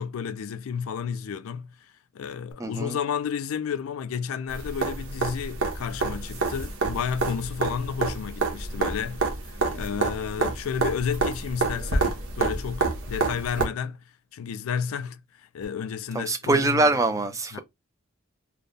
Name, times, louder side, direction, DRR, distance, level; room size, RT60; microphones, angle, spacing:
voice 1, 0.0-1.7 2.1-9.3 9.7-14.0 14.3-15.2 15.5-16.9 17.5-17.6, left 7 dB, 85° left, 0.4 m, -31 dB
voice 2, 2.6-3.0 16.1-17.6, right 2 dB, 15° right, 0.4 m, -23 dB
sound 1, 4.5-13.6 15.6-15.7, right 3 dB, 80° right, 1.1 m, -28 dB
3.3 x 2.2 x 3.9 m
head